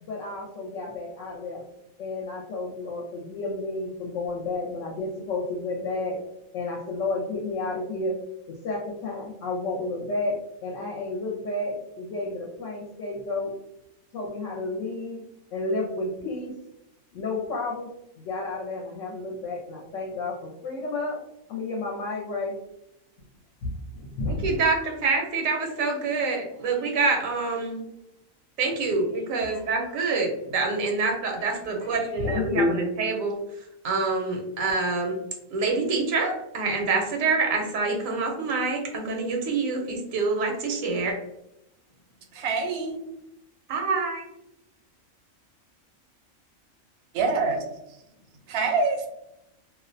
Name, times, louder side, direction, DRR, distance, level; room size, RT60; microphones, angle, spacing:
voice 1, 0.0-1.6 2.0-6.2 6.5-8.2 8.5-10.4 10.6-13.5 14.1-15.2 15.5-16.5 17.1-17.9 18.2-21.2 21.5-22.6 23.6-24.5 26.8-27.0 29.4-29.7 31.9-32.8, left 2 dB, 70° left, -2 dB, 0.9 m, -31 dB
voice 2, 24.3-27.8 28.6-33.4 33.8-35.2 35.5-41.2 43.7-44.2, right 3 dB, 80° right, 1 dB, 1.0 m, -26 dB
voice 3, 42.3-43.0 47.1-47.6 48.5-49.1, right 4 dB, 65° right, 1 dB, 0.7 m, -25 dB
2.4 x 2.1 x 2.5 m, 0.83 s
omnidirectional pair, 1.4 m